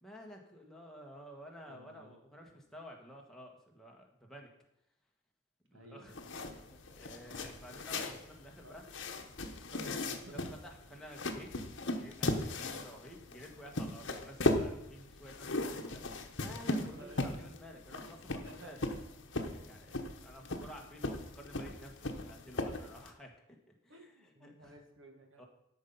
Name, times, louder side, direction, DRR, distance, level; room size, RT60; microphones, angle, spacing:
voice 1, 0.0-4.5 5.7-6.2 6.5-6.6 6.9-8.9 10.3-11.5 11.8-16.0 16.4-18.8 19.5-24.8 25.4-25.5, equal, ahead, -1 dB, 1.4 m, -52 dB
voice 2, 1.7-2.2 2.5-2.6 5.7-6.2 6.5-6.6 8.6-8.8 9.7-10.5 16.6-17.3 18.4-18.8 23.9-25.4, right 1 dB, 65° right, 4 dB, 1.5 m, -54 dB
sound 1, 6.1-23.1, left 2 dB, 60° left, 1.0 m, -38 dB
12.5 x 5.7 x 5.4 m, 0.85 s
head